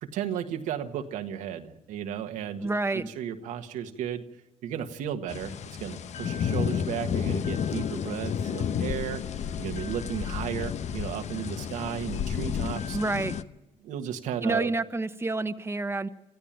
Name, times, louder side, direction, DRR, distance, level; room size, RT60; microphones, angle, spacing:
voice 1, 0.0-4.2 4.6-5.5 5.8-9.2 9.6-13.0 13.8-14.7, right 9 dB, 90° right, 5 dB, 1.6 m, -34 dB
voice 2, 2.6-3.1 12.9-13.4 14.4-16.1, right 2 dB, 20° right, 8 dB, 1.2 m, -28 dB
sound 1, 5.3-13.4, left 8 dB, 65° left, 0.9 m, -31 dB
26.0 x 14.5 x 8.9 m, 0.98 s
cardioid pair, 75°, 13 cm